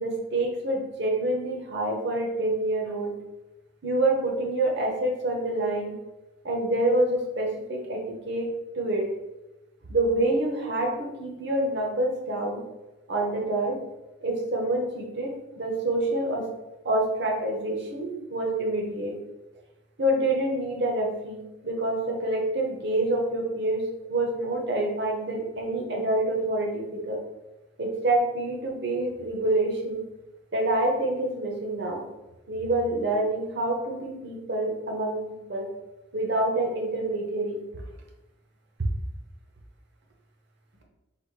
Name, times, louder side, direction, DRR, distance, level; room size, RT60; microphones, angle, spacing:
voice 1, 0.0-3.1 3.8-5.9 6.4-8.5 8.7-9.1 9.9-12.6 13.1-13.8 14.2-16.5 16.8-19.2 20.0-27.2 27.8-30.0 30.5-32.0 32.5-35.7 36.1-37.6, right 1 dB, 50° right, 0 dB, 0.9 m, -27 dB
4.0 x 2.5 x 4.6 m, 1.0 s
head